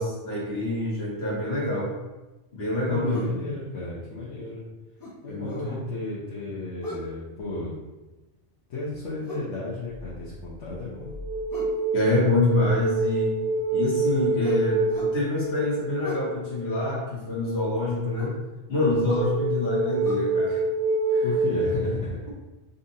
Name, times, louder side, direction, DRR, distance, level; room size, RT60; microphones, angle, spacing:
voice 1, 0.0-1.9 2.5-3.3 5.3-5.8 11.9-13.3 13.7-18.4 18.7-20.6 21.1-21.3 21.6-21.7, left 2 dB, 65° left, -7 dB, 1.6 m, -26 dB
voice 2, 2.9-4.6 5.2-7.7 8.7-11.1 21.2-22.2, left 2 dB, 80° left, -8 dB, 1.1 m, -33 dB
sound 1, 3.1-3.4 5.0-5.7 6.8-7.1 9.2-9.5 11.5-11.8 14.4-15.2 16.0-16.3 18.2-18.4 19.1-19.3 20.0-20.2, left 1 dB, 20° left, 0.7 m, -38 dB
sound 2, 9.9-10.2 10.7-16.6 19.1-21.8, right 2 dB, 55° right, 0.8 m, -27 dB
5.2 x 2.5 x 2.7 m, 1.1 s
omnidirectional pair, 1.2 m